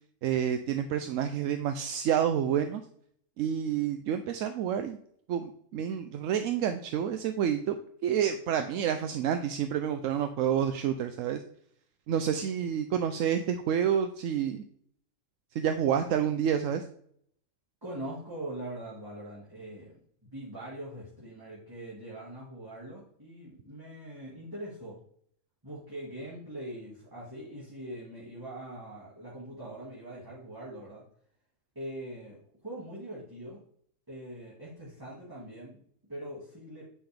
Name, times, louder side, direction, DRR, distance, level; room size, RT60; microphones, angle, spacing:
voice 1, 0.2-2.8 3.4-5.0 5.3-7.7 8.0-11.4 12.1-14.6 15.5-16.8, right 9 dB, 80° right, 8 dB, 1.0 m, -29 dB
voice 2, 17.8-20.0 20.2-25.0 25.6-31.0 31.8-33.6 34.1-35.8 36.1-36.8, right 1 dB, 15° right, -6 dB, 1.9 m, -42 dB
9.5 x 5.8 x 3.4 m, 0.64 s
omnidirectional pair, 1.3 m